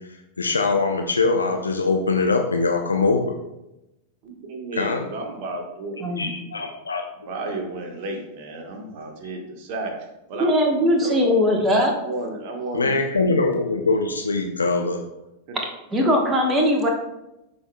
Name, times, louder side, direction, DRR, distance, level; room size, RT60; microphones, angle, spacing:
voice 1, 0.4-3.3 4.7-5.0 6.2-7.1 12.7-15.0, left 3 dB, 75° left, 3 dB, 0.5 m, -22 dB
voice 2, 4.2-6.5 7.2-10.0 10.3-10.5 11.0-11.2 12.0-13.4 15.5-15.6, right 2 dB, 45° right, 3 dB, 1.3 m, -33 dB
voice 3, 10.4-11.9 15.9-16.9, equal, 20° right, 1 dB, 1.1 m, -19 dB
11.5 x 4.4 x 2.2 m, 0.92 s
figure-of-eight pair, 90°, 0 cm